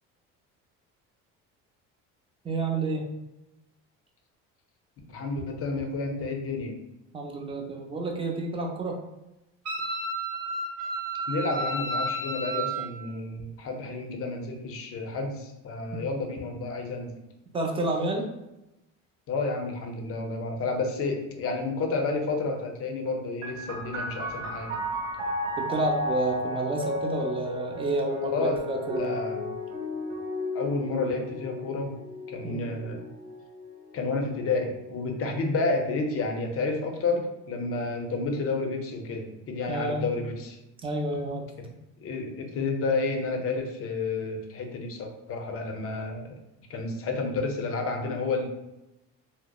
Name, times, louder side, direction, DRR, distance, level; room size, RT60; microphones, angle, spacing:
voice 1, 2.4-3.1 7.1-9.0 15.9-16.0 17.5-18.3 25.6-29.2 32.4-32.7 39.7-40.1 40.8-41.5, right 2 dB, 15° right, 1 dB, 0.4 m, -30 dB
voice 2, 5.1-6.8 11.3-17.1 19.3-24.8 28.3-28.6 29.0-29.5 30.5-31.9 32.3-33.1 33.9-40.6 42.0-46.4 46.7-48.5, left 3 dB, 45° left, 3 dB, 0.5 m, -30 dB
Wind instrument woodwind instrument, 9.6-12.9, right 2 dB, 45° right, 0.7 m, -31 dB
sound 1, 23.4-36.6 37.5-38.3, left 1 dB, 75° right, 1.1 m, -34 dB
2.7 x 2.0 x 2.2 m, 0.94 s
supercardioid pair, 95°, 33 cm